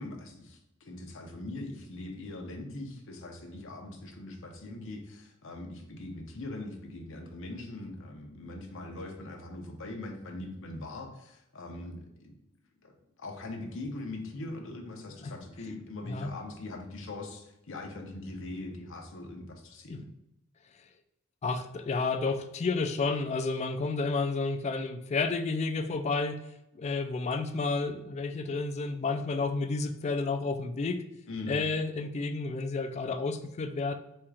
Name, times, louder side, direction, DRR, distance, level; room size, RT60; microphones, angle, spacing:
voice 1, 0.0-12.3 12.8-12.9 13.2-20.1 31.3-31.6, left 2 dB, 60° left, 3 dB, 0.7 m, -41 dB
voice 2, 21.4-26.4 26.7-31.0 31.5-34.0, left 3 dB, 30° left, 8 dB, 0.3 m, -31 dB
4.3 x 2.4 x 4.8 m, 0.85 s
head